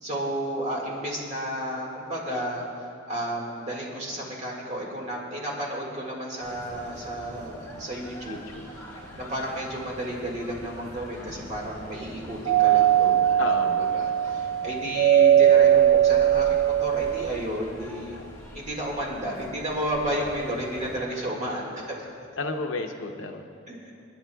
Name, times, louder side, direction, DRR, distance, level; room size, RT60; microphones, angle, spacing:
voice 1, 0.0-8.4 9.2-13.2 13.8-18.2 18.5-22.0 23.7-23.9, equal, 35° right, -2 dB, 1.8 m, -32 dB
sound 1, 6.4-21.0, equal, 15° left, 1.9 m, -44 dB
voice 2, 8.3-8.7 11.2-11.5 13.4-13.8 22.4-23.5, left 3 dB, 80° left, 4 dB, 0.7 m, -32 dB
Doorbell, 12.5-17.3, right 10 dB, 70° right, 0.4 m, -20 dB
27.0 x 9.9 x 2.3 m, 2.7 s
head